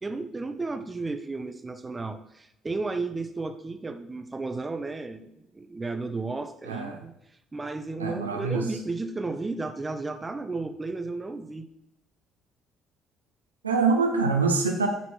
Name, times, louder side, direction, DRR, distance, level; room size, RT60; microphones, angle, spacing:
voice 1, 0.0-7.1 7.5-11.7, right 3 dB, 20° right, 8 dB, 0.9 m, -33 dB
voice 2, 6.6-7.1 8.0-8.7 13.6-14.9, right 4 dB, 85° right, 2 dB, 0.8 m, -25 dB
11.0 x 4.5 x 4.5 m, 0.79 s
figure-of-eight pair, 50°, 0 cm